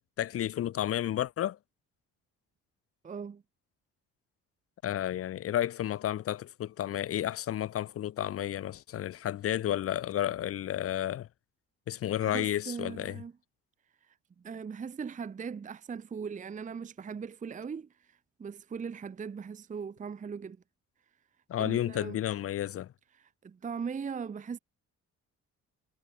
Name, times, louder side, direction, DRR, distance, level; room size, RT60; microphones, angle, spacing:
voice 1, 0.2-1.6 4.8-11.3 11.9-13.2 21.5-22.9, left 11 dB, 50° left, 0.5 m, -32 dB
voice 2, 3.0-3.4 12.2-13.3 14.4-17.9 18.4-20.6 21.6-22.2 23.4-24.6, right 6 dB, 25° right, 0.6 m, -39 dB
cardioid pair, 90°, 30 cm